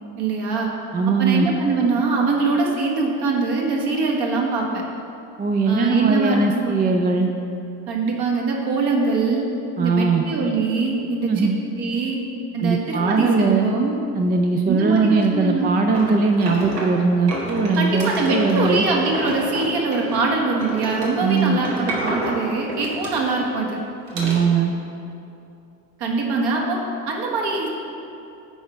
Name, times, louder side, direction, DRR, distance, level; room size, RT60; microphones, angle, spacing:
voice 1, 0.2-0.7 1.2-4.8 5.7-6.8 7.9-9.5 9.8-11.5 11.8-12.2 12.5-14.0 14.7-15.8 17.8-23.8 26.0-26.8 27.1-27.7, right 3 dB, 50° right, -1 dB, 1.6 m, -23 dB
voice 2, 0.9-1.5 5.4-7.3 9.8-10.2 11.3-11.6 12.6-13.7 14.1-18.8 21.2-21.6 24.1-24.7, right 4 dB, 20° right, 3 dB, 0.5 m, -20 dB
sound 1, 15.9-17.0 17.3-20.3 20.6-23.5 24.1-24.4, right 1 dB, 80° right, 1.6 m, -30 dB
9.0 x 4.8 x 5.0 m, 2.7 s
figure-of-eight pair, 60°, 49 cm